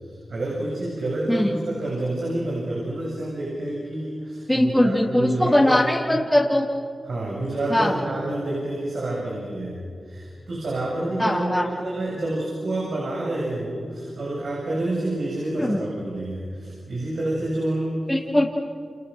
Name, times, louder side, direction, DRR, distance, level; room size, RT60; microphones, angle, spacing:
voice 1, 0.0-6.2 7.0-18.1, right 1 dB, 80° right, -4 dB, 7.5 m, -28 dB
voice 2, 1.3-1.6 4.5-6.7 7.7-8.0 11.2-11.7 15.6-15.8 18.1-18.5, left 1 dB, 10° left, -3 dB, 3.3 m, -20 dB
29.5 x 28.5 x 6.5 m, 2.3 s
cardioid pair, 50°, 0 cm